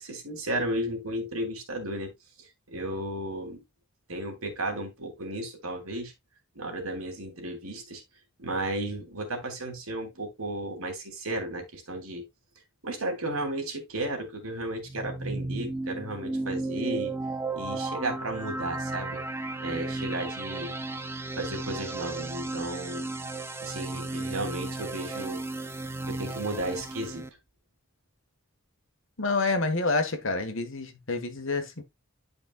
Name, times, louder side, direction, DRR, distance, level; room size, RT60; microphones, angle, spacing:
voice 1, 0.0-2.1 2.4-3.6 4.1-6.1 6.5-8.0 8.4-12.3 12.8-17.1 17.5-19.2 19.6-20.7 21.4-23.1 23.6-25.4 26.1-27.2, right 1 dB, 75° right, 2.8 m, -34 dB
sound 1, 14.7-27.3, right 2 dB, 10° right, 0.5 m, -34 dB
voice 2, 29.2-31.8, left 3 dB, 60° left, 1.5 m, -28 dB
11.0 x 5.3 x 2.3 m
head